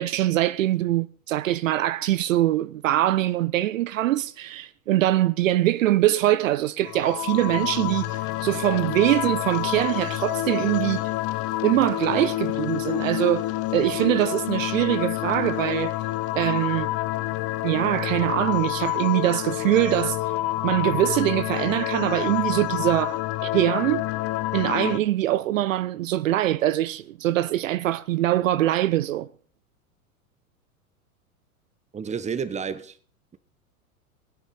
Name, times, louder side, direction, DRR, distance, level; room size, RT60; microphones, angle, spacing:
voice 1, 0.0-11.1 11.6-13.5 13.7-15.9 16.3-16.9 17.6-20.2 20.6-24.0 24.5-29.3, right 14 dB, 60° right, 0.7 m, -23 dB
sound 1, 6.8-25.0, left 16 dB, 30° left, 0.8 m, -28 dB
voice 2, 31.9-33.0, right 6 dB, 15° right, 1.2 m, -30 dB
19.0 x 9.6 x 4.2 m
figure-of-eight pair, 95°, 44 cm